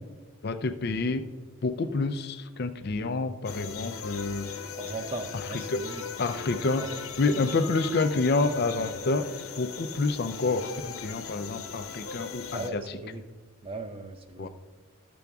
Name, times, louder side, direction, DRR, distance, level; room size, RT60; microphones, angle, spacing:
voice 1, 0.4-1.2 1.6-4.5 5.3-5.8 6.2-6.9 7.2-9.3 9.5-13.0 14.4-14.5, left 3 dB, 45° left, 9 dB, 0.4 m, -28 dB
sound 1, 3.4-12.7, left 6 dB, 75° left, 0.9 m, -39 dB
voice 2, 4.8-6.0 6.6-6.9 12.5-13.2 13.6-14.5, right 3 dB, 25° right, 6 dB, 0.5 m, -38 dB
11.5 x 6.9 x 3.5 m, 1.3 s
head